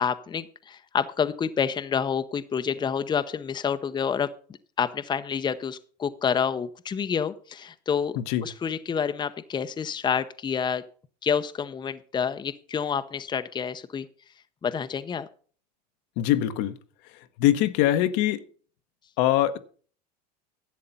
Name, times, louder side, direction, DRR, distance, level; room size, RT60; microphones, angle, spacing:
voice 1, 0.0-4.3 4.8-8.2 8.4-10.8 11.2-14.1 14.6-15.3, left 7 dB, 20° left, 0.7 m, -28 dB
voice 2, 8.2-8.5 16.2-16.8 17.4-18.4 19.2-19.6, left 13 dB, 65° left, 1.0 m, -22 dB
11.5 x 7.6 x 5.5 m
supercardioid pair, 100°, 20 cm